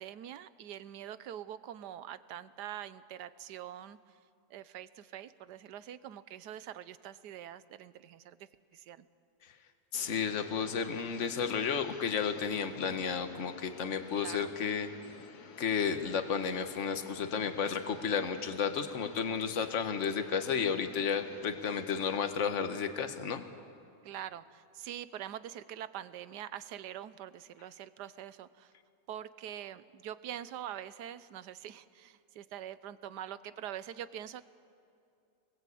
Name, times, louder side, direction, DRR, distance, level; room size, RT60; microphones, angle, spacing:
voice 1, 0.0-4.0 4.5-9.1 14.1-14.5 24.0-28.7 29.1-34.4, right 11 dB, 80° right, 14 dB, 1.4 m, -44 dB
sound 1, 9.9-22.2, left 6 dB, 70° left, 1.6 m, -52 dB
voice 2, 9.9-14.9 15.6-23.4, left 6 dB, 50° left, 7 dB, 1.5 m, -32 dB
26.0 x 20.5 x 8.5 m, 2.5 s
omnidirectional pair, 1.8 m